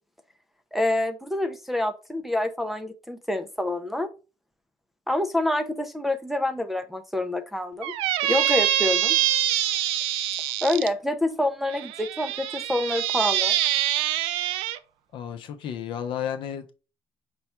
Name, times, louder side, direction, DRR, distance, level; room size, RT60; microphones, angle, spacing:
voice 1, 0.7-4.1 5.1-7.9 8.2-9.2 10.6-13.6, left 1 dB, ahead, 0.4 m, -27 dB
Squeak, 7.8-10.9 11.7-14.8, right 12 dB, 85° right, 0.4 m, -25 dB
voice 2, 15.1-16.7, left 9 dB, 60° left, 0.7 m, -32 dB
5.4 x 2.3 x 4.3 m
cardioid pair, 105°, 9 cm